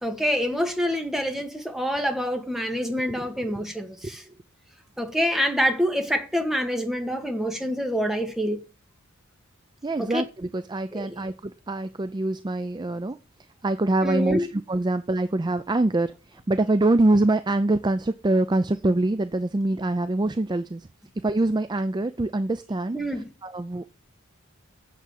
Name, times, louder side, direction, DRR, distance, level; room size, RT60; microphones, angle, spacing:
voice 1, 0.0-4.2 5.0-8.6 10.0-10.2 10.9-11.1 14.0-14.5 22.9-23.3, equal, ahead, 1.9 m, -26 dB
voice 2, 9.8-13.2 13.6-20.9 21.2-23.0 23.4-23.9, right 2 dB, 20° right, 0.4 m, -24 dB
8.3 x 7.2 x 7.9 m
head